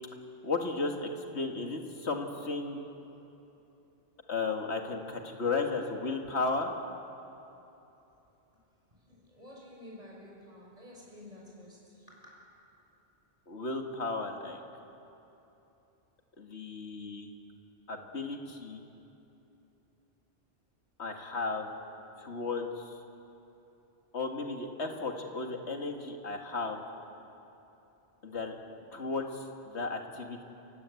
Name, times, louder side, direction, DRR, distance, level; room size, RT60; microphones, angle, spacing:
voice 1, 0.4-2.8 4.3-6.7 13.5-14.6 16.4-17.3 17.9-18.8 21.0-21.7 22.2-23.0 24.1-26.8 28.2-28.5 28.9-30.4, left 3 dB, 80° left, 3 dB, 2.2 m, -34 dB
voice 2, 9.1-11.8 12.1-12.5, left 1 dB, 35° right, -4 dB, 6.6 m, -51 dB
29.0 x 16.0 x 8.4 m, 2.9 s
omnidirectional pair, 1.1 m